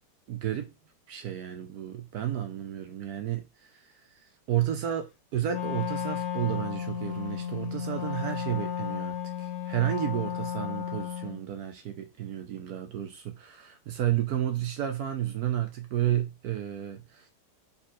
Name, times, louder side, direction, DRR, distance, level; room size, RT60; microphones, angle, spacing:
voice 1, 0.3-0.7 1.1-3.4 3.7-3.8 4.5-17.3, right 11 dB, 65° right, 1.0 m, -31 dB
Wind instrument woodwind instrument, 5.5-11.4, left 9 dB, 75° left, 0.6 m, -34 dB
4.2 x 2.4 x 4.2 m
omnidirectional pair, 2.0 m